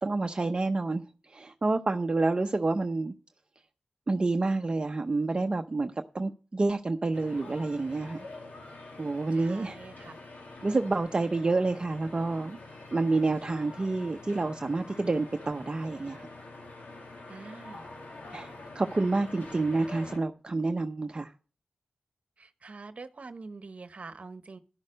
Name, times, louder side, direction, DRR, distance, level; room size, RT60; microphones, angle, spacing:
voice 1, 0.0-3.1 4.1-8.2 9.0-9.8 10.6-12.6 12.9-16.3 18.3-21.3, right 3 dB, 30° right, 0.7 m, -28 dB
sound 1, 7.1-20.2, left 2 dB, 80° left, 2.3 m, -46 dB
voice 2, 9.3-10.2 17.3-17.9 22.4-24.6, right 3 dB, 50° right, 1.0 m, -45 dB
12.5 x 6.4 x 6.4 m
wide cardioid pair, 100°, 3 cm